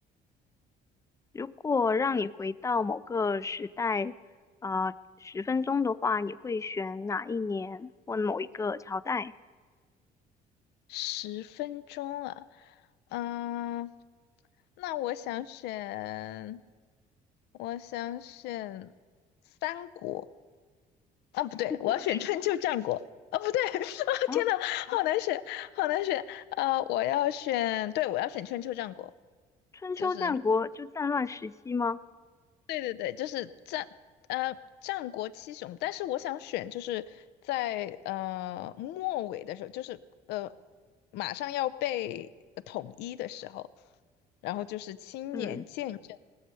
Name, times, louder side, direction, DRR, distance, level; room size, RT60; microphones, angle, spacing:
voice 1, 1.3-4.1 4.6-4.9 5.2-9.3 24.3-24.4 29.8-32.0 45.3-45.6, left 4 dB, 20° left, 18 dB, 0.3 m, -30 dB
voice 2, 10.9-12.7 13.1-13.9 14.8-16.6 17.6-18.9 19.6-20.3 21.3-23.0 23.3-29.1 30.0-30.4 32.7-33.9 34.3-40.0 40.3-40.5 41.1-42.3 42.7-43.7 44.4-46.2, left 14 dB, 85° left, 16 dB, 0.5 m, -33 dB
19.0 x 6.5 x 6.8 m, 1.5 s
cardioid pair, 110°, 17 cm